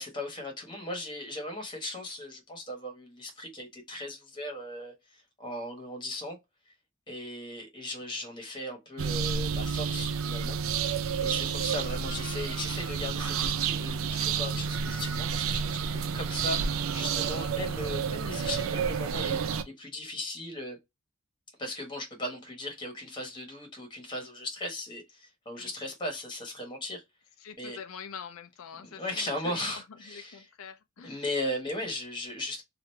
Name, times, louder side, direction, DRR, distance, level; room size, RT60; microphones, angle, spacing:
voice 1, 0.0-6.4 7.1-20.8 21.6-27.0 27.6-27.8 28.8-30.4 31.0-32.6, left 1 dB, 20° left, 1.2 m, -37 dB
sound 1, 9.0-19.6, right 6 dB, 75° right, 0.4 m, -30 dB
voice 2, 11.2-12.1 25.5-25.8 27.4-31.3, left 7 dB, 75° left, 0.4 m, -46 dB
2.9 x 2.5 x 3.2 m
head